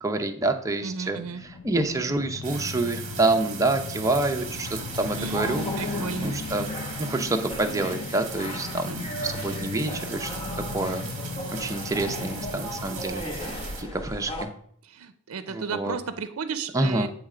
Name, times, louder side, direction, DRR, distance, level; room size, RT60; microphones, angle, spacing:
voice 1, 0.0-4.7 5.0-6.7 7.0-10.3 10.7-11.1 11.6-13.2 13.8-14.5 15.5-16.0 16.7-17.1, right 2 dB, 15° right, 5 dB, 0.6 m, -27 dB
voice 2, 0.8-1.4 5.2-6.4 8.9-9.0 14.9-17.1, right 5 dB, 85° right, 11 dB, 0.5 m, -34 dB
sound 1, 1.2-13.1, left 4 dB, 85° left, 0.5 m, -38 dB
sound 2, 2.4-13.8, right 7 dB, 35° right, 1.1 m, -40 dB
sound 3, 4.4-14.5, equal, 25° left, 0.8 m, -36 dB
8.6 x 3.2 x 4.9 m, 0.63 s
head